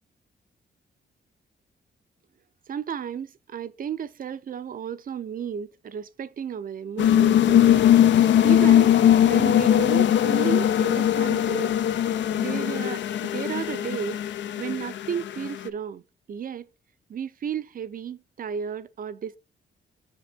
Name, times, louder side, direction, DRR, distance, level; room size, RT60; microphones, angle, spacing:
voice 1, 2.7-7.9 8.4-11.8 12.4-14.2 14.6-16.0 16.3-16.7 17.1-19.4, right 7 dB, 45° right, 0.6 m, -33 dB
sound 1, 7.0-15.7, left 10 dB, 70° left, 0.5 m, -20 dB
6.8 x 5.2 x 3.5 m
wide cardioid pair, 135°, 19 cm